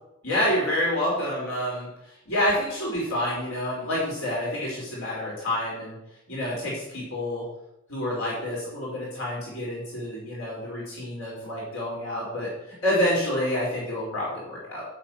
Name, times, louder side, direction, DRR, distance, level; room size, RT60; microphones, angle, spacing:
voice 1, 0.2-6.0 6.3-7.4 7.9-14.9, left 1 dB, 70° left, -5 dB, 4.7 m, -28 dB
8.2 x 7.2 x 7.9 m, 0.87 s
head